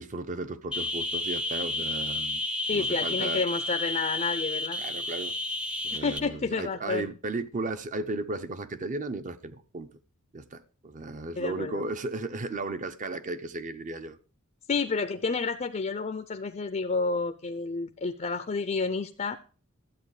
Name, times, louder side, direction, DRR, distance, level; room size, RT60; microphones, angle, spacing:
voice 1, 0.0-2.4 2.7-3.4 4.8-5.4 5.8-9.9 10.3-14.2, right 2 dB, 35° right, 0.7 m, -35 dB
sound 1, 0.7-6.2, left 1 dB, 5° right, 0.6 m, -31 dB
voice 2, 2.7-4.8 5.9-7.1 11.4-11.8 14.7-19.4, left 4 dB, 35° left, 0.5 m, -30 dB
12.5 x 8.2 x 4.9 m
head